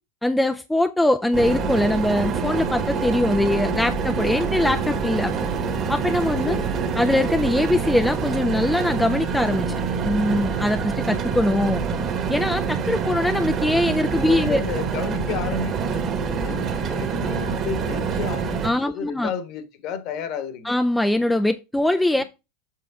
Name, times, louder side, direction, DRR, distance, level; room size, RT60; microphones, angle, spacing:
voice 1, 0.2-5.3 5.9-6.6 7.0-11.9 12.3-14.6 18.6-19.3 20.7-22.2, left 1 dB, 5° left, 0.4 m, -22 dB
sound 1, 1.3-18.7, right 5 dB, 30° right, 1.3 m, -26 dB
voice 2, 14.2-20.8 22.2-22.3, left 7 dB, 50° left, 1.3 m, -32 dB
7.7 x 5.7 x 3.6 m
supercardioid pair, 140°, 0 cm